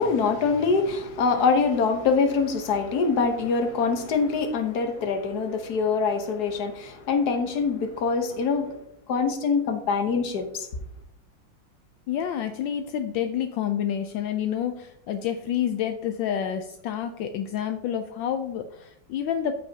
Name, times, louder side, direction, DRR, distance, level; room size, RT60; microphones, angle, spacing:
voice 1, 0.0-8.8 9.1-10.7, left 5 dB, 60° left, 1.6 m, -24 dB
voice 2, 12.1-19.5, left 9 dB, 80° left, 1.3 m, -28 dB
14.5 x 5.4 x 2.8 m
omnidirectional pair, 2.1 m